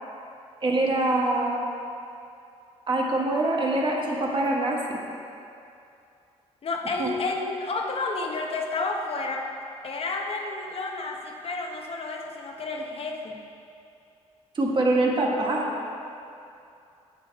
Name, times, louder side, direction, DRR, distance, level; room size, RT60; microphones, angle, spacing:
voice 1, 0.6-1.7 2.9-5.0 7.0-7.1 14.5-15.7, right 2 dB, 40° right, -1 dB, 1.4 m, -24 dB
voice 2, 6.6-9.5 9.8-13.4, left 3 dB, 50° left, 1 dB, 0.9 m, -31 dB
8.7 x 6.2 x 4.0 m, 2.6 s
cardioid pair, 80°, 12 cm